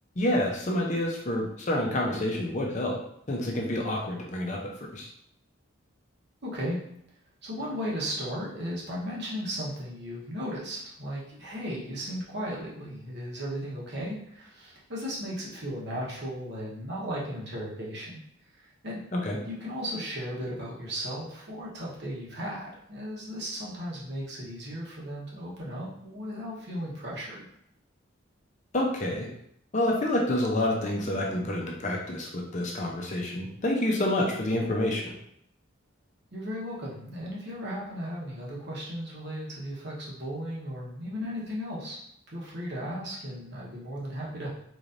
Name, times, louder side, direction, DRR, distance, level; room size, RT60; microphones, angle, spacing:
voice 1, 0.2-3.0 3.3-4.6 4.9-5.1 19.1-19.4 28.7-29.3 29.7-35.1, left 1 dB, 35° left, -1 dB, 0.6 m, -28 dB
voice 2, 6.4-6.8 7.4-18.2 18.5-19.0 19.4-27.4 36.3-42.0 42.3-44.5, equal, 55° right, -5 dB, 1.1 m, -36 dB
4.0 x 3.1 x 2.5 m, 0.71 s
head